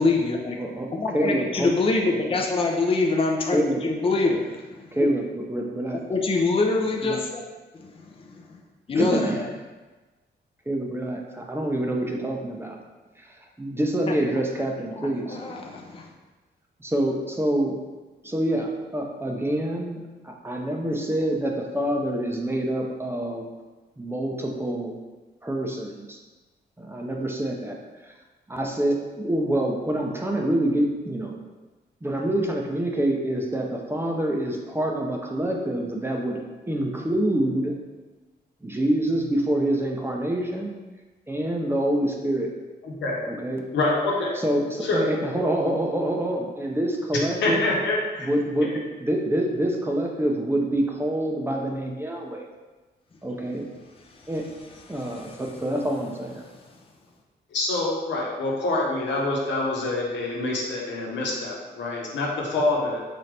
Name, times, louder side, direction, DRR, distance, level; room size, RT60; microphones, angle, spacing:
voice 1, 0.0-0.6 0.9-4.8 6.1-7.4 7.7-8.6 8.9-9.3 14.1-14.2 15.3-16.1 54.9-55.4, left 3 dB, 30° left, 1 dB, 0.6 m, -25 dB
voice 2, 0.6-1.7 2.0-2.4 3.5-3.8 4.9-6.0 6.8-7.2 8.9-9.6 10.7-12.8 13.2-15.4 16.8-17.7 18.2-20.0 20.2-23.5 24.0-25.0 25.4-26.2 26.8-27.8 28.0-28.1 28.5-31.4 32.0-36.4 36.7-37.7 38.6-40.7 41.3-42.5 43.2-43.6 44.3-47.7 48.2-48.7 49.0-52.4 53.2-53.7 54.3-54.4 54.9-56.4, right 1 dB, 15° right, 0 dB, 0.6 m, -26 dB
voice 3, 42.8-43.2 43.7-44.3 44.8-45.0 47.4-48.3 57.5-63.0, left 2 dB, 85° left, -3 dB, 1.1 m, -26 dB
4.2 x 3.8 x 3.3 m, 1.2 s
cardioid pair, 95°, 18 cm